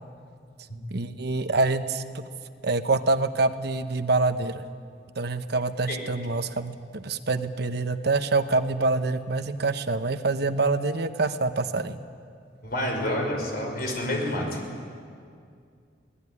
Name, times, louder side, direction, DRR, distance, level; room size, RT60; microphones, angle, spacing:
voice 1, 0.9-2.2 2.6-4.6 5.2-12.0, right 3 dB, 60° right, 9 dB, 1.0 m, -26 dB
voice 2, 12.6-14.6, left 1 dB, 55° left, 2 dB, 5.7 m, -28 dB
24.0 x 18.5 x 9.8 m, 2.3 s
head